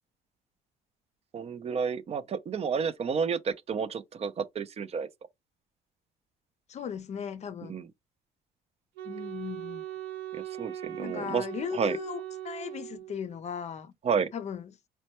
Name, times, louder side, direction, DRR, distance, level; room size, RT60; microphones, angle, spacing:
voice 1, 1.3-5.1 7.6-7.9 10.3-11.5 11.7-12.0 14.0-14.3, right 6 dB, 40° right, 0.5 m, -31 dB
voice 2, 6.7-7.8 9.0-9.8 11.0-13.9 14.3-14.6, left 8 dB, 40° left, 0.5 m, -37 dB
Wind instrument woodwind instrument, 9.0-13.4, right 11 dB, 85° right, 1.0 m, -40 dB
4.2 x 2.2 x 2.9 m
cardioid pair, 110°, 17 cm